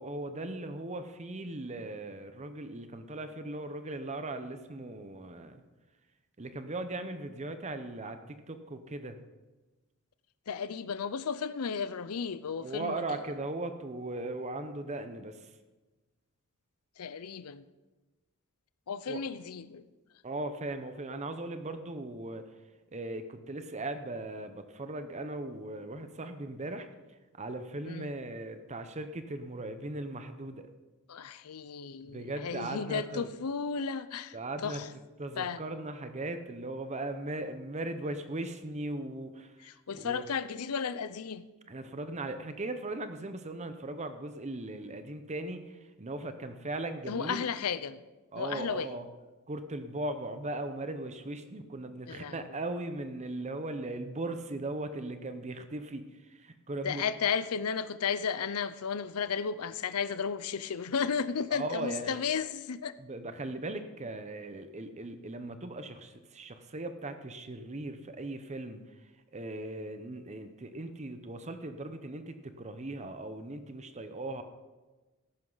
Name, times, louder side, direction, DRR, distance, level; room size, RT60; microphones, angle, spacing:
voice 1, 0.0-5.6 6.4-9.2 12.6-15.5 19.1-19.2 20.2-22.5 22.9-26.9 27.4-30.7 32.0-33.3 34.3-34.8 35.2-39.7 39.9-40.2 41.7-47.5 48.3-49.1 49.5-57.0 61.5-62.2 63.0-74.4, right 2 dB, 30° right, 0.8 m, -38 dB
voice 2, 10.5-13.0 17.0-17.6 18.9-19.9 27.8-28.1 31.1-34.4 34.6-34.9 35.4-35.6 39.6-41.4 47.1-48.0 48.4-48.9 52.1-52.4 56.8-62.9, left 6 dB, 85° left, 0.6 m, -34 dB
14.0 x 11.5 x 4.0 m
head